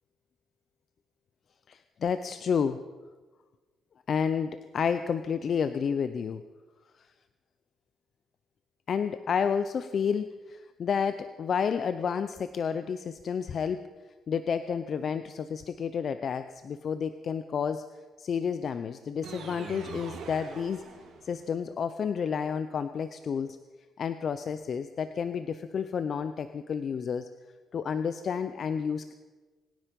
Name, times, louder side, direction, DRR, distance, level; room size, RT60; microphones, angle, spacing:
voice 1, 1.7-2.8 4.1-6.4 7.0-7.1 8.9-13.8 14.3-17.9 18.2-20.9 21.2-23.6 24.0-27.3 27.7-29.1, left 6 dB, 55° left, 11 dB, 0.7 m, -30 dB
sound 1, 19.2-21.5, right 5 dB, 85° right, 3.9 m, -43 dB
25.0 x 10.0 x 5.3 m, 1.3 s
cardioid pair, 90°, 0 cm